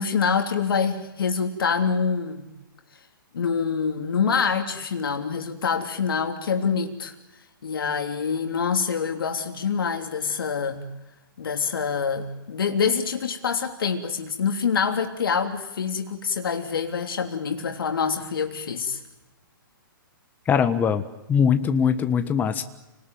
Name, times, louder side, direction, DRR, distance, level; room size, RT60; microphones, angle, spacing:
voice 1, 0.0-2.5 3.3-7.1 7.6-10.9 11.4-19.0, left 6 dB, 75° left, 5 dB, 3.2 m, -26 dB
voice 2, 20.5-21.0 21.3-22.6, left 7 dB, 15° left, 9 dB, 1.4 m, -21 dB
30.0 x 19.5 x 9.4 m, 1.0 s
hypercardioid pair, 140°, 12 cm